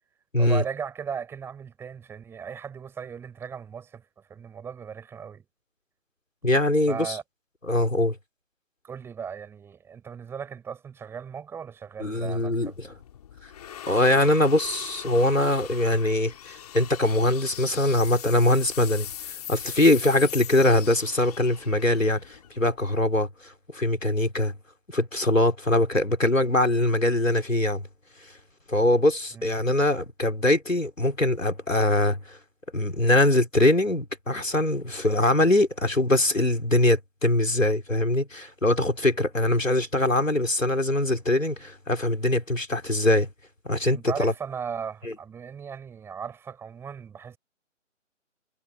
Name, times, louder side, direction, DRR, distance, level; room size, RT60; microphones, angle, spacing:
voice 1, 0.4-5.4 6.9-7.2 8.8-12.7 29.3-29.5 43.9-47.4, right 7 dB, 5° right, 5.6 m, -37 dB
voice 2, 6.4-7.2 7.7-8.2 12.0-12.9 13.9-19.1 19.5-24.5 24.9-27.8 28.7-32.4 32.7-43.3 43.6-44.3 45.0-45.1, left 1 dB, 85° left, 4.1 m, -22 dB
sound 1, 12.0-23.3, left 10 dB, 30° left, 3.6 m, -41 dB
figure-of-eight pair, 145°, 38 cm